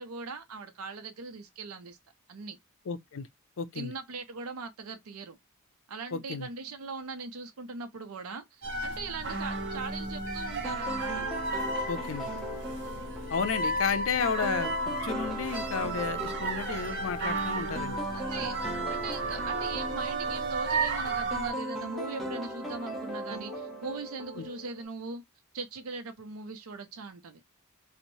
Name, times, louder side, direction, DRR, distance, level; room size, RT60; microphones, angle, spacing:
voice 1, 0.0-2.0 2.3-2.6 3.7-5.4 5.9-11.3 18.1-18.6 18.9-25.2 25.5-27.4, right 4 dB, 80° right, 0.6 m, -40 dB
voice 2, 2.9-3.3 3.6-3.9 6.1-6.5 11.9-12.3 13.3-14.7 15.0-18.0 24.4-24.5, left 6 dB, 65° left, 0.5 m, -32 dB
sound 1, 8.6-21.5, right 3 dB, 60° right, 0.9 m, -33 dB
sound 2, 10.6-24.9, equal, ahead, 0.7 m, -38 dB
3.0 x 2.1 x 2.6 m
head